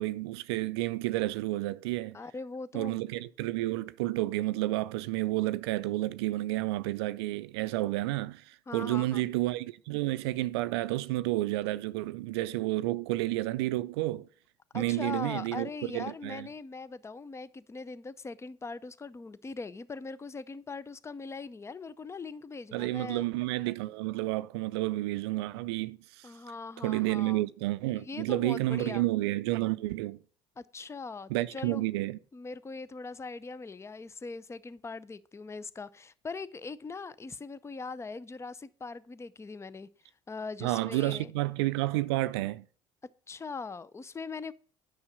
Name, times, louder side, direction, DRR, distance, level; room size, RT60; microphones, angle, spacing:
voice 1, 0.0-2.2 2.7-14.3 14.7-16.5 22.7-26.3 26.8-30.2 31.3-32.2 40.6-42.7, right 18 dB, 75° right, 0.4 m, -30 dB
voice 2, 2.1-3.0 8.7-9.3 14.7-23.2 26.2-27.4 27.9-29.1 30.6-31.8 32.3-39.9 40.3-41.3 43.3-44.5, left 4 dB, 20° left, 0.6 m, -41 dB
9.7 x 6.2 x 5.1 m
hypercardioid pair, 60°, 14 cm